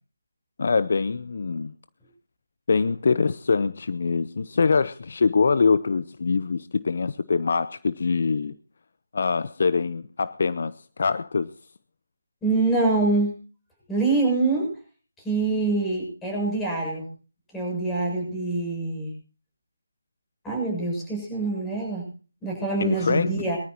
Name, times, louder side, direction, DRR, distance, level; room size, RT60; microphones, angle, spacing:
voice 1, 0.6-1.7 2.7-8.6 9.1-11.5 22.8-23.3, left 4 dB, 50° left, 16 dB, 0.7 m, -24 dB
voice 2, 12.4-13.3 13.9-14.7 15.2-17.1 17.5-19.1 20.4-22.0 22.4-23.6, right 3 dB, 5° left, -1 dB, 7.2 m, -25 dB
23.0 x 13.5 x 2.8 m, 0.37 s
figure-of-eight pair, 160°, 0 cm